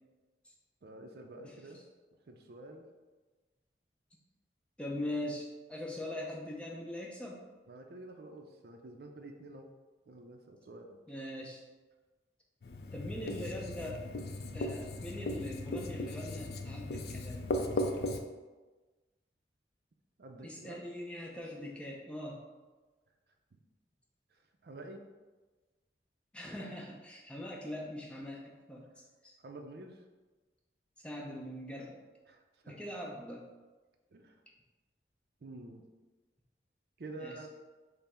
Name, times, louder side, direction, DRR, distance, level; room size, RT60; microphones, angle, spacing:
voice 1, 0.8-1.8 2.3-2.9 7.7-9.7 10.1-11.0 20.2-20.8 23.5-23.6 24.3-25.0 29.4-30.0 32.3-32.8 34.1-34.4 35.4-35.9 37.0-37.5, right 2 dB, 60° right, 3 dB, 0.4 m, -49 dB
voice 2, 4.8-7.4 11.1-11.6 12.9-14.0 14.5-17.5 17.8-17.9 20.4-22.4 26.3-28.9 29.2-29.4 31.0-32.0 32.6-33.4 37.2-37.3, left 1 dB, 5° left, -2 dB, 0.5 m, -41 dB
Writing, 12.6-18.2, left 1 dB, 60° left, 0.4 m, -37 dB
5.5 x 2.0 x 4.2 m, 1.3 s
head